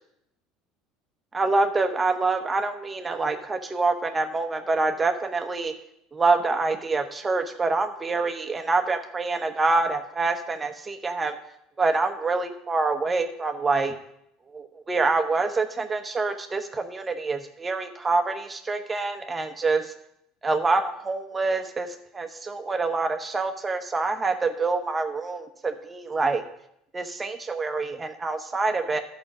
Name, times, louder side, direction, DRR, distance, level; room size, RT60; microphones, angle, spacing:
voice 1, 1.3-5.7 6.1-11.4 11.8-13.9 14.5-19.9 20.4-21.9 22.1-26.4 26.9-29.0, right 3 dB, 20° right, 5 dB, 0.9 m, -26 dB
11.0 x 5.3 x 6.1 m, 0.77 s
supercardioid pair, 90°, 0 cm